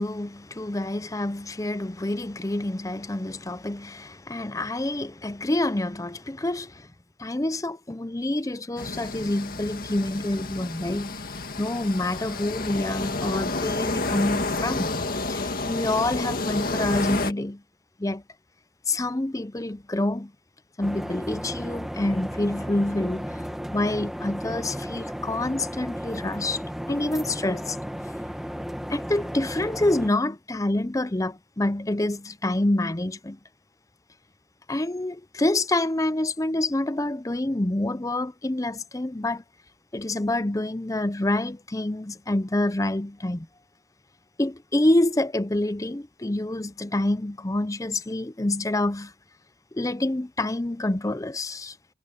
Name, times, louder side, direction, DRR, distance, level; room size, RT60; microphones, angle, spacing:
voice 1, 0.0-6.9 7.2-11.2 11.6-15.0 15.3-17.6 18.0-18.2 18.9-20.3 20.8-23.3 23.7-26.6 26.9-27.8 28.9-33.4 34.7-39.4 39.9-43.5 44.4-49.1 49.7-51.8, left 1 dB, 20° left, 0.6 m, -27 dB
sound 1, 8.8-17.3, left 3 dB, 50° left, 1.9 m, -30 dB
sound 2, 20.8-30.1, equal, ahead, 1.4 m, -34 dB
head